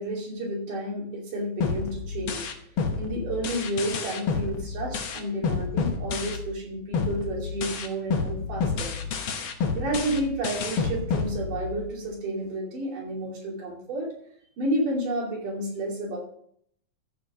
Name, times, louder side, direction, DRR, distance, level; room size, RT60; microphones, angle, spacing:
voice 1, 0.0-2.5 2.9-8.9 9.7-14.1 14.6-16.2, right 1 dB, 85° right, -3 dB, 4.4 m, -31 dB
sound 1, 1.6-6.6 6.9-12.0, left 5 dB, 60° left, 1.4 m, -29 dB
13.5 x 5.2 x 5.9 m, 0.65 s
omnidirectional pair, 3.6 m